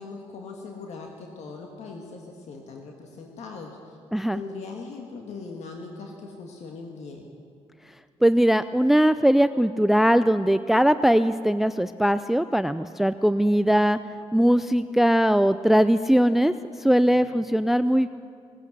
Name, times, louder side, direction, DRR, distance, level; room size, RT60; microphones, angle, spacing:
voice 1, 0.0-4.0 4.3-7.3 17.0-17.4, left 4 dB, 70° left, 1 dB, 1.6 m, -40 dB
voice 2, 8.2-14.0 14.3-16.5 16.8-18.1, equal, ahead, 13 dB, 0.3 m, -20 dB
18.5 x 8.3 x 8.1 m, 2.3 s
cardioid pair, 75°, 12 cm